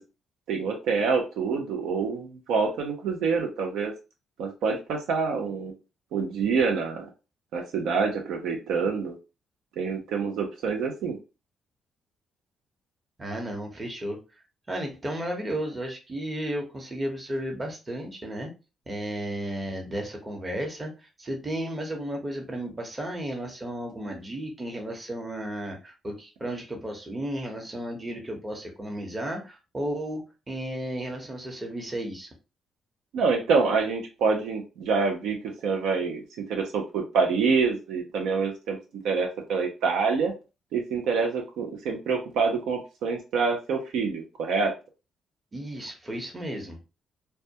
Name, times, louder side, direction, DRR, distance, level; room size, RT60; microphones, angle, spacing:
voice 1, 0.5-3.9 4.4-5.7 6.1-7.1 7.5-9.1 9.8-11.2 33.1-36.2 36.5-38.8 39.0-40.3 40.7-44.7, right 5 dB, 80° right, 2 dB, 0.5 m, -26 dB
voice 2, 13.2-14.2 14.7-18.5 18.9-32.3 45.5-46.8, right 1 dB, 25° right, 2 dB, 0.9 m, -33 dB
2.2 x 2.1 x 2.7 m, 0.30 s
supercardioid pair, 70°, 0 cm